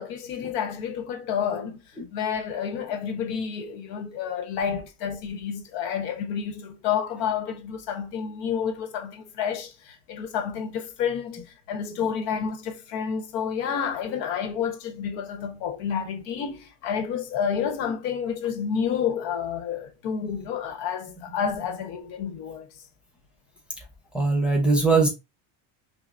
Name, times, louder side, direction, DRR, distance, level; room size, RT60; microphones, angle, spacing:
voice 1, 0.0-22.7, left 7 dB, 75° left, 1.0 m, -30 dB
voice 2, 24.1-25.1, right 3 dB, ahead, 0.8 m, -20 dB
5.6 x 2.0 x 2.5 m
cardioid pair, 145°, 43 cm